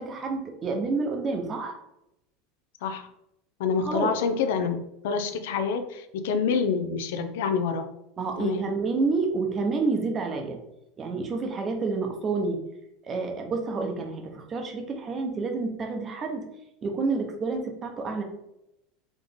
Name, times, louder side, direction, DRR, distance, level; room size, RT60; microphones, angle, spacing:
voice 1, 0.0-1.8 3.8-4.1 8.2-10.6 11.0-12.6 13.0-16.4 16.8-18.2, right 4 dB, 20° right, 3 dB, 0.8 m, -29 dB
voice 2, 3.6-7.8 8.4-8.7, left 6 dB, 75° left, 8 dB, 0.6 m, -27 dB
3.9 x 3.2 x 3.6 m, 0.82 s
supercardioid pair, 155°, 0 cm